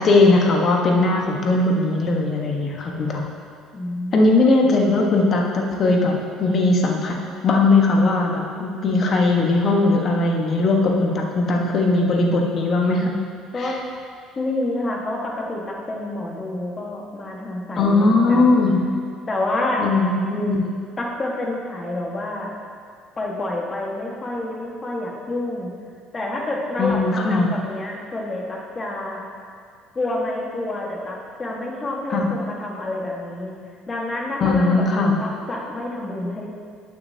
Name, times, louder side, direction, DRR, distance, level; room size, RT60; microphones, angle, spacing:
voice 1, 0.0-3.2 4.1-6.1 6.4-13.1 13.6-13.8 17.8-18.8 19.8-20.6 26.8-27.5 32.1-32.3 34.4-35.2, left 2 dB, 45° left, 0 dB, 1.3 m, -19 dB
voice 2, 3.7-4.5 13.5-13.8 14.3-18.6 19.3-19.8 21.0-22.5 23.2-25.7 26.1-29.2 29.9-33.5 33.9-36.5, left 2 dB, 25° left, -1 dB, 1.6 m, -28 dB
12.0 x 6.8 x 2.8 m, 2.2 s
supercardioid pair, 100°, 0 cm